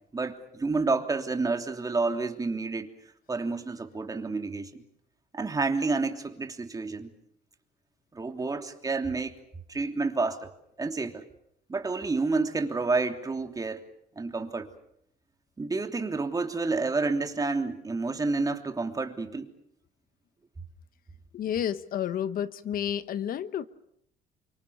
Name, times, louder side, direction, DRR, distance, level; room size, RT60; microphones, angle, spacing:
voice 1, 0.1-2.9 3.3-4.8 5.3-7.1 8.1-9.4 9.7-10.5 10.8-11.3 11.7-13.8 14.1-14.7 15.6-19.5, right 3 dB, 20° right, 5 dB, 3.1 m, -29 dB
voice 2, 21.3-23.7, left 9 dB, 60° left, 14 dB, 1.2 m, -30 dB
29.0 x 25.0 x 7.1 m, 0.72 s
cardioid pair, 110°, 17 cm